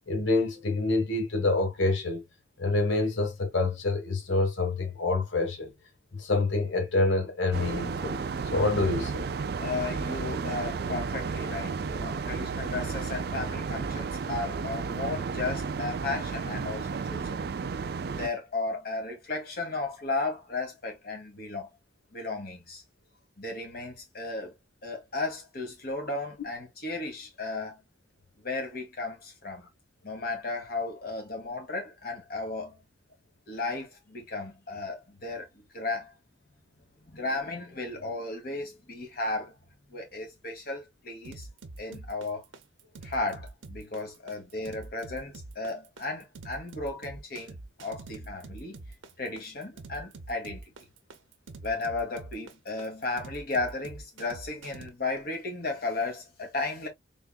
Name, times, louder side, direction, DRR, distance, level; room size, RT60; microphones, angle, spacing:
voice 1, 0.1-2.2 2.6-5.7 6.1-8.2 8.5-9.2, left 2 dB, 75° left, 1.1 m, -27 dB
sound 1, 7.5-18.3, right 5 dB, 55° right, 0.4 m, -33 dB
voice 2, 9.6-17.4 18.0-21.7 22.1-22.8 23.4-24.5 24.8-27.8 28.4-29.7 30.0-32.8 33.5-36.1 37.0-39.5 39.9-41.5 41.8-42.4 43.0-48.8 49.2-50.6 51.6-56.9, left 3 dB, 50° left, 1.6 m, -34 dB
sound 2, 41.2-54.9, right 2 dB, 90° right, 0.7 m, -45 dB
3.6 x 3.5 x 2.2 m
head